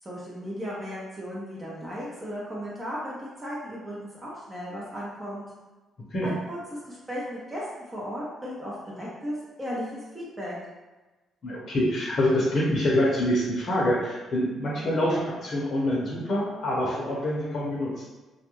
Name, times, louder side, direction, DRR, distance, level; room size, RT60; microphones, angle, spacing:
voice 1, 0.0-5.4 6.2-6.6 6.8-10.5, equal, 20° right, -7 dB, 0.7 m, -36 dB
voice 2, 11.4-17.9, left 1 dB, 55° left, -6 dB, 0.7 m, -26 dB
2.3 x 2.2 x 3.0 m, 1.2 s
cardioid pair, 90°, 0 cm